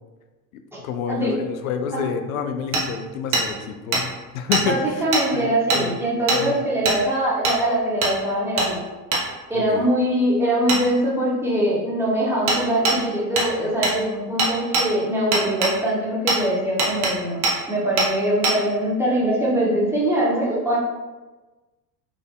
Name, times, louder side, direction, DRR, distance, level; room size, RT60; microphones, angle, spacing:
voice 1, 0.8-5.0 5.3-6.0 6.3-6.6 9.5-9.9, left 7 dB, 60° left, 7 dB, 0.5 m, -29 dB
Hammer, 2.7-2.8 3.3-3.5 3.9-4.0 4.5-4.6 5.1-5.2 5.7-5.8 6.3-6.4 6.8-7.0 7.4-7.6 8.0-8.1 8.6-8.7 9.1-9.2 10.7-10.8 12.5-12.6 12.8-13.0 13.4-13.5 13.8-14.0 14.4-14.9 15.3-15.7 16.3-16.4 16.8-17.1 17.4-17.6 18.0-18.1 18.4-18.6, right 3 dB, 50° right, 1.0 m, -21 dB
voice 2, 4.6-8.8 9.5-17.4 17.7-20.8, right 1 dB, 5° right, -6 dB, 1.1 m, -22 dB
3.8 x 3.3 x 2.3 m, 1.2 s
figure-of-eight pair, 70°, 48 cm